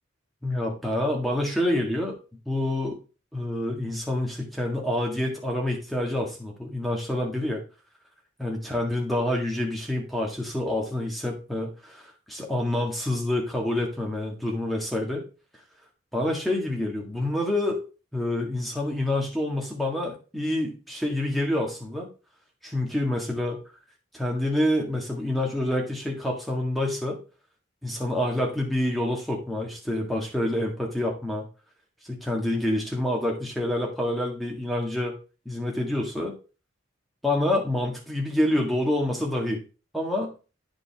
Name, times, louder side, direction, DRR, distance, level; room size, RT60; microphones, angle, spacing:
voice 1, 0.4-2.2 2.5-3.0 3.3-7.6 8.4-15.2 16.1-17.8 18.1-22.1 22.6-23.6 24.1-27.2 27.8-31.4 32.1-35.1 35.5-36.3 37.2-39.6 39.9-40.3, left 1 dB, ahead, -1 dB, 1.7 m, -27 dB
9.5 x 5.3 x 3.5 m, 0.33 s
head